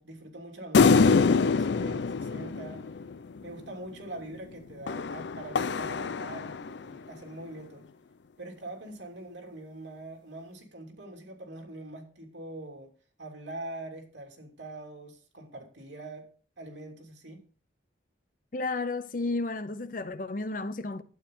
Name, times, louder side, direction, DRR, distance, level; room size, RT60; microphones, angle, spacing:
voice 1, 0.0-2.9 3.4-7.9 8.4-12.9 13.2-16.3 16.6-17.5, right 2 dB, 75° right, 3.0 m, -43 dB
sound 1, 0.7-3.4 4.9-6.9, left 4 dB, 70° left, 0.4 m, -25 dB
voice 2, 18.5-21.0, left 3 dB, 45° left, 0.7 m, -32 dB
11.5 x 9.1 x 3.8 m
head